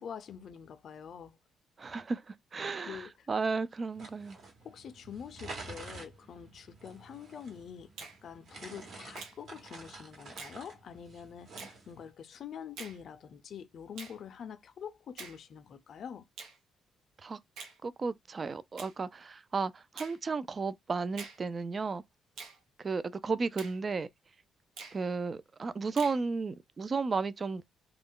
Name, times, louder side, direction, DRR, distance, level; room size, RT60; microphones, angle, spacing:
voice 1, 0.0-1.3 2.9-3.3 4.6-16.2, left 7 dB, 60° left, 0.5 m, -46 dB
voice 2, 1.8-4.4 17.2-17.4 17.8-22.0 22.8-24.1 24.9-27.6, right 4 dB, 35° right, 0.3 m, -34 dB
sound 1, 3.9-12.1, right 3 dB, 65° right, 1.1 m, -49 dB
Finger snapping, 8.0-8.2 9.2-9.4 10.4-10.6 11.6-11.8 12.8-13.0 14.0-14.2 15.2-15.4 16.4-16.6 17.6-17.8 18.8-19.0 20.0-20.2 21.2-21.4 22.4-22.6 23.6-23.8 24.8-25.0 26.0-26.2, right 5 dB, 85° right, 0.7 m, -45 dB
2.3 x 2.1 x 3.6 m
cardioid pair, 90°, 0 cm